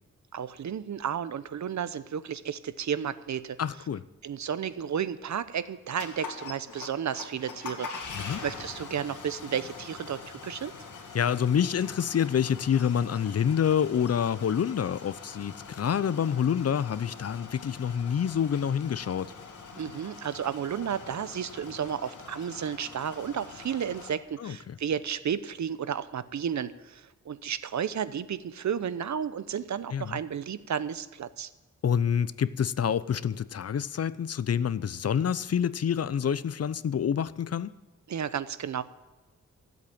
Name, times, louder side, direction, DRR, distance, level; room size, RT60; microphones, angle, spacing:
voice 1, 0.3-3.6 4.2-7.9 8.4-10.7 19.7-31.5 38.1-38.8, right 8 dB, 65° right, 0.8 m, -32 dB
voice 2, 3.6-4.0 8.1-8.4 11.1-19.3 24.4-24.8 29.9-30.2 31.8-37.7, left 8 dB, 55° left, 0.6 m, -27 dB
sound 1, 6.0-24.1, left 4 dB, 85° left, 2.3 m, -44 dB
16.0 x 8.1 x 8.6 m
cardioid pair, 75°, 30 cm